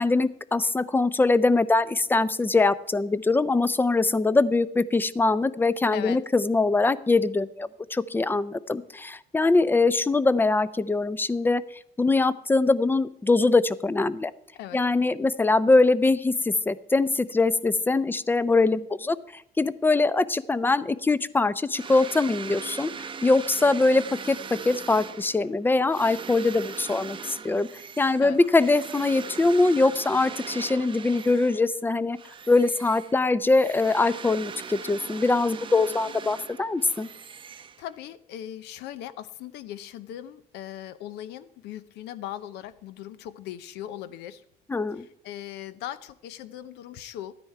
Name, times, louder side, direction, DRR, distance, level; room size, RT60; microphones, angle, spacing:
voice 1, 0.0-11.6 12.0-14.3 14.7-22.9 23.2-27.7 28.0-32.2 32.5-37.1 44.7-45.1, left 3 dB, 10° left, 18 dB, 0.4 m, -23 dB
sound 1, 21.7-31.8 32.1-38.2, right 6 dB, 30° right, 0.6 m, -40 dB
voice 2, 37.5-44.4 45.0-47.3, left 11 dB, 85° left, 15 dB, 0.7 m, -39 dB
13.0 x 9.8 x 4.7 m, 0.73 s
cardioid pair, 110°, 17 cm